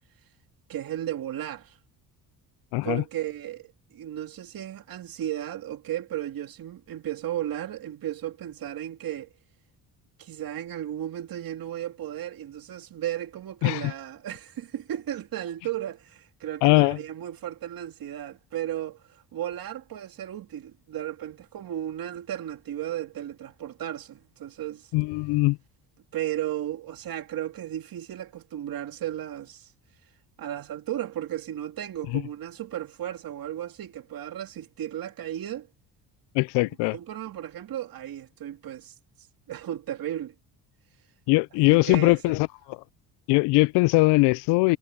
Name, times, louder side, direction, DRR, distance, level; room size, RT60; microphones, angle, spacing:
voice 1, 0.7-1.8 2.8-9.3 10.2-24.9 26.1-29.7 30.4-35.7 36.6-40.3 41.7-42.4, right 12 dB, 55° right, 2.5 m, -35 dB
voice 2, 2.7-3.0 13.6-13.8 16.6-17.0 24.9-25.6 32.1-32.2 36.3-36.9 41.3-42.5 43.3-44.8, left 23 dB, 80° left, 0.5 m, -21 dB
supercardioid pair, 80°, 41 cm